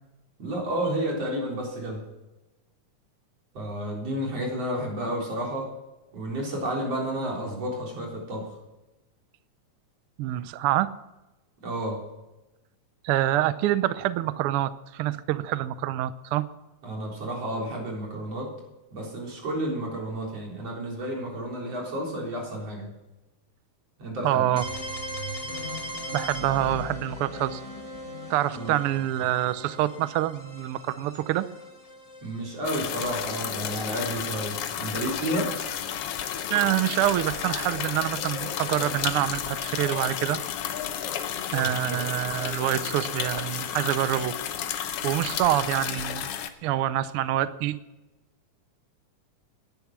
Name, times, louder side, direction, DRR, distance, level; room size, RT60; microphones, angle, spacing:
voice 1, 0.4-2.0 3.5-5.7 6.1-8.5 11.6-12.0 16.8-18.5 18.9-22.9 24.0-24.6 28.6-28.8 32.2-35.5 41.6-42.1, right 1 dB, 55° right, -1 dB, 4.9 m, -31 dB
voice 2, 10.2-10.9 13.0-16.4 24.2-24.6 26.1-27.6 28.3-31.5 36.5-40.4 41.5-44.3 45.0-46.3 46.6-47.8, right 13 dB, 85° right, 14 dB, 1.2 m, -26 dB
sound 1, 24.6-34.3, equal, 15° left, 1.4 m, -39 dB
sound 2, 32.6-46.5, left 9 dB, 65° left, 1.7 m, -32 dB
18.0 x 10.5 x 6.1 m, 1.0 s
omnidirectional pair, 3.3 m